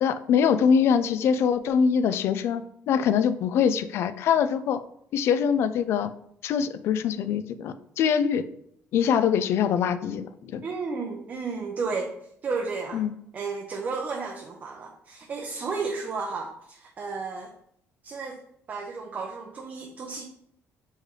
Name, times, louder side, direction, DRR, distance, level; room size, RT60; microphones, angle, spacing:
voice 1, 0.0-4.8 5.1-6.1 6.4-8.4 8.9-10.6 12.9-13.1, left 7 dB, 65° left, 12 dB, 0.3 m, -23 dB
voice 2, 10.6-12.1 12.4-13.0 13.3-17.5 18.0-18.4 18.7-20.2, right 4 dB, 35° right, 2 dB, 0.6 m, -33 dB
4.4 x 3.3 x 3.1 m, 0.71 s
cardioid pair, 135°, 5 cm